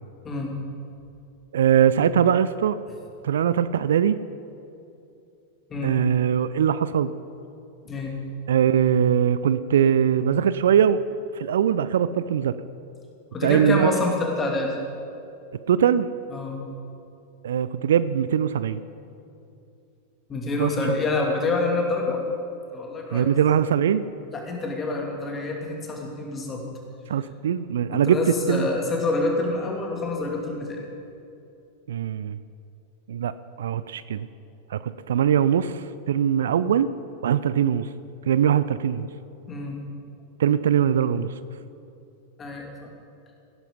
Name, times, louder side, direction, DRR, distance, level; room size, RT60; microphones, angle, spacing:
voice 1, 1.5-2.8 3.2-4.2 5.8-7.1 8.5-11.0 11.3-12.6 13.4-13.9 15.7-16.1 17.4-18.8 20.6-21.0 23.1-24.1 27.1-28.2 28.5-28.7 31.9-32.4 33.1-33.3 33.6-34.3 34.7-36.9 37.2-37.9 38.3-39.1 40.4-41.3, right 9 dB, 60° right, 15 dB, 0.4 m, -21 dB
voice 2, 13.3-14.8 16.3-16.6 20.3-22.2 22.7-23.3 24.3-26.6 27.9-30.9 39.5-39.8 42.4-42.9, left 3 dB, 20° left, 0 dB, 2.8 m, -27 dB
17.5 x 10.5 x 5.3 m, 2.6 s
figure-of-eight pair, 90°, 0 cm